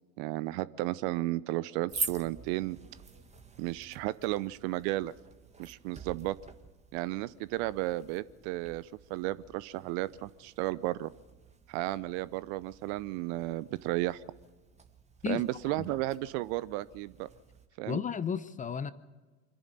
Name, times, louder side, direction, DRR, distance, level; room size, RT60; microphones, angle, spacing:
voice 1, 0.2-2.8 3.6-5.1 5.6-6.4 6.9-11.1 11.7-14.2 15.3-17.3 17.8-18.0, right 17 dB, 50° right, 19 dB, 0.7 m, -33 dB
sound 1, 1.9-17.7, right 4 dB, 15° right, 1.6 m, -46 dB
voice 2, 15.2-15.9 17.9-18.9, left 7 dB, 20° left, 15 dB, 0.8 m, -34 dB
24.5 x 11.0 x 9.8 m, 1.3 s
hypercardioid pair, 90°, 41 cm